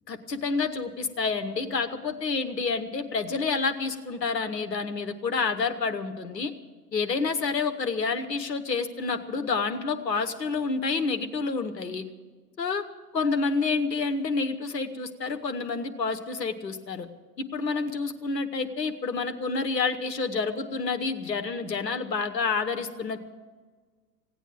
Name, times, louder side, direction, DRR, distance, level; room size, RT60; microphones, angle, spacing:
voice 1, 0.1-6.5 6.9-12.0 12.6-12.8 13.1-17.1 17.5-23.2, left 4 dB, 80° left, 9 dB, 1.1 m, -28 dB
16.5 x 9.1 x 8.9 m, 1.4 s
figure-of-eight pair, 80°, 49 cm